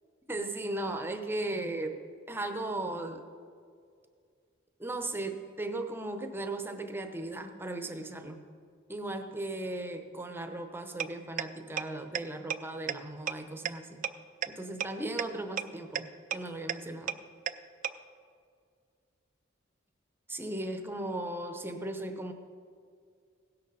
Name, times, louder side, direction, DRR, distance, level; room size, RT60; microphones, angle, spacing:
voice 1, 0.3-2.0 2.3-3.2 4.8-8.5 8.9-14.1 14.5-17.2 20.3-22.3, right 2 dB, 10° right, 6 dB, 0.7 m, -37 dB
sound 1, 11.0-11.1 11.4-11.5 11.8-11.9 12.1-12.2 12.5-12.6 12.9-13.0 13.3-13.4 13.6-13.7 14.0-14.1 14.4-14.5 14.8-14.9 15.2-15.3 15.6-15.7 15.9-16.0 16.3-16.4 16.7-16.8 17.1-17.2 17.5-17.6 17.8-17.9, right 9 dB, 40° right, 0.4 m, -30 dB
17.0 x 6.6 x 5.5 m, 2.2 s
head